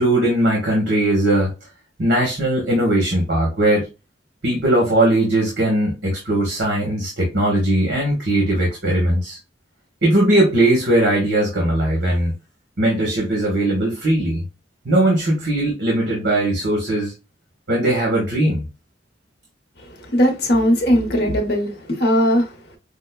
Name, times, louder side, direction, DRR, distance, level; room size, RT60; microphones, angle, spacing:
voice 1, 0.0-1.5 2.0-3.9 4.4-9.4 10.0-12.3 12.8-14.4 14.8-17.1 17.7-18.7, right 1 dB, 65° right, 1.2 m, -19 dB
voice 2, 19.9-22.8, equal, 60° left, 0.9 m, -19 dB
5.0 x 2.2 x 2.2 m
head